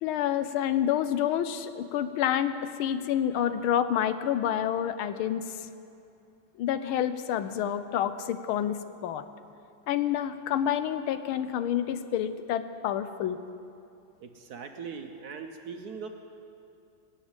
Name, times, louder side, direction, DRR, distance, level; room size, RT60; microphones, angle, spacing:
voice 1, 0.0-5.7 6.6-9.2 9.9-13.4, left 10 dB, 85° left, 12 dB, 1.5 m, -28 dB
voice 2, 14.2-16.1, right 5 dB, 60° right, 5 dB, 1.1 m, -40 dB
20.0 x 7.3 x 8.8 m, 2.5 s
omnidirectional pair, 2.3 m